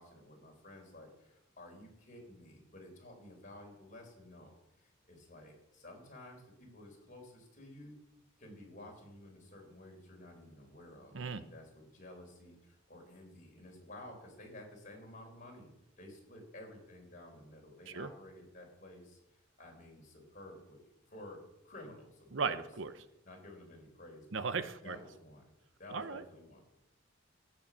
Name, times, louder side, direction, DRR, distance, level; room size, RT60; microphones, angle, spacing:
voice 1, 0.0-8.0 8.4-15.7 16.0-19.2 19.6-20.8 21.1-22.7 23.2-24.4 24.8-25.4 25.8-26.6, left 1 dB, 40° left, 0 dB, 4.6 m, -53 dB
voice 2, 22.3-22.9 24.3-25.0 25.9-26.2, right 5 dB, 65° right, 12 dB, 0.8 m, -36 dB
12.5 x 9.2 x 7.3 m, 0.87 s
head